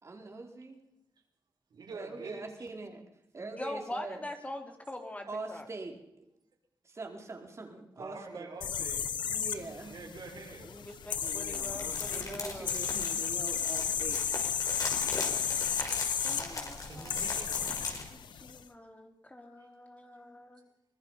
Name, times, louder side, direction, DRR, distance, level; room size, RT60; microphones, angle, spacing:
voice 1, 0.0-0.8 1.9-3.0 3.3-4.3 5.3-6.3 6.8-8.5 9.3-9.9 11.2-14.2, right 3 dB, 40° right, 3 dB, 4.2 m, -43 dB
voice 2, 1.7-2.4 8.0-9.0 9.9-10.8 16.9-17.7 19.6-19.7, right 4 dB, 70° right, 1 dB, 6.0 m, -46 dB
voice 3, 3.4-5.7 10.6-12.8 16.2-17.2 17.5-17.7 18.1-20.6, left 1 dB, 20° left, 4 dB, 3.0 m, -43 dB
sound 1, 8.6-18.6, left 8 dB, 85° left, 1.2 m, -34 dB
sound 2, 11.1-18.0, left 3 dB, 50° left, 6.4 m, -39 dB
25.0 x 19.5 x 5.7 m, 0.81 s
cardioid pair, 75°, 8 cm